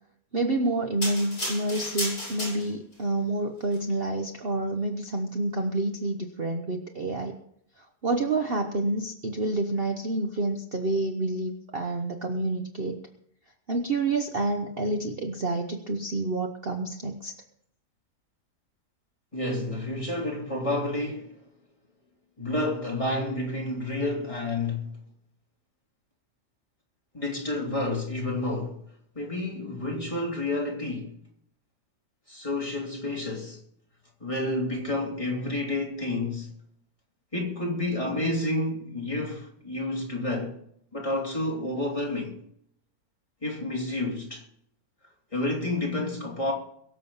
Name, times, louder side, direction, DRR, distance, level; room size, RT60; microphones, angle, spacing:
voice 1, 0.3-7.4 7.8-13.0 13.7-17.3, right 2 dB, 40° right, 1.1 m, -28 dB
sound 1, 1.0-3.0 3.6-3.8, equal, 65° left, 8.5 m, -33 dB
voice 2, 19.3-21.4 22.4-24.9 27.1-28.8 29.1-31.1 32.3-33.6 34.2-36.5 37.3-40.5 40.9-42.4 43.4-44.4 45.3-46.5, left 2 dB, 20° left, 3.3 m, -30 dB
22.5 x 7.6 x 5.6 m
omnidirectional pair, 1.7 m